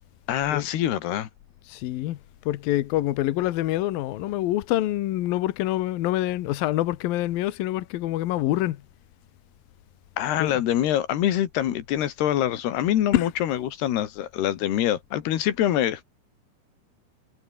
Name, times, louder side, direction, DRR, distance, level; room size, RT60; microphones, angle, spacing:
voice 1, 0.3-1.3 10.2-16.0, left 11 dB, 60° left, 3.5 m, -25 dB
voice 2, 1.7-2.2 2.5-8.8 10.4-10.6 13.1-13.3, left 15 dB, 80° left, 2.0 m, -26 dB
omnidirectional pair, 5.8 m